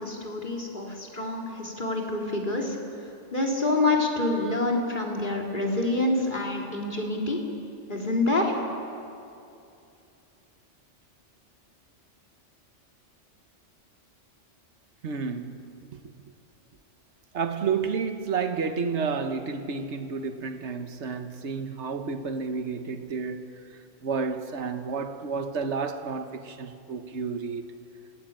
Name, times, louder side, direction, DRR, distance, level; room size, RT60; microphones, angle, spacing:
voice 1, 0.0-2.8 3.3-7.4 7.9-8.6, left 2 dB, 40° left, 3.8 m, -27 dB
voice 2, 15.0-16.0 17.3-27.7, right 5 dB, 70° right, 1.5 m, -31 dB
28.0 x 19.5 x 8.9 m
omnidirectional pair, 1.2 m